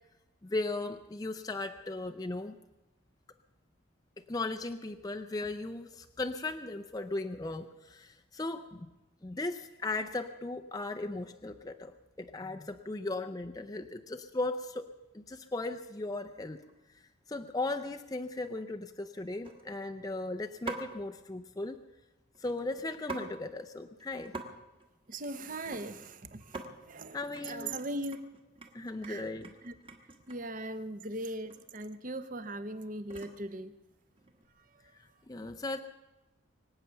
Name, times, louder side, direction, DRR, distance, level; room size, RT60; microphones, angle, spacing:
voice 1, 0.4-2.5 4.3-8.9 9.2-16.6 17.3-21.8 22.4-24.3 27.1-27.8 28.7-29.5 35.3-35.8, left 2 dB, 20° left, 5 dB, 0.5 m, -37 dB
sound 1, 16.5-16.7 17.2-17.5 17.8-17.9 18.3-18.6 19.4-20.0 20.7-21.0 22.3-23.3 23.6-23.7 24.0-24.5 24.7-26.1 26.4-26.7 27.1-27.4 27.8-30.5 31.5-31.6 31.9-33.5 34.1-34.5, right 3 dB, 25° right, 1.4 m, -45 dB
voice 2, 25.1-27.2 27.4-28.2 29.0-29.2 29.7-29.8 30.3-33.7, right 1 dB, 40° right, 12 dB, 0.9 m, -39 dB
23.5 x 8.8 x 6.9 m, 1.1 s
head